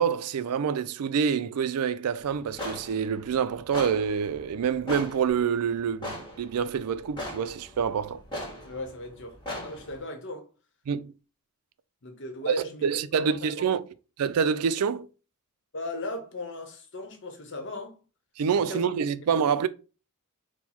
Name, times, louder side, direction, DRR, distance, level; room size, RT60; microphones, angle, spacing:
voice 1, 0.0-8.2 10.9-11.1 12.5-12.6 12.8-13.8 14.2-15.1 18.4-19.7, right 7 dB, 85° right, 0.4 m, -27 dB
sound 1, 2.2-10.0, left 1 dB, 20° left, 1.4 m, -39 dB
voice 2, 8.6-10.5 12.0-13.8 15.7-18.0 18.5-18.9, left 1 dB, 55° left, 0.9 m, -37 dB
4.5 x 2.2 x 4.1 m
head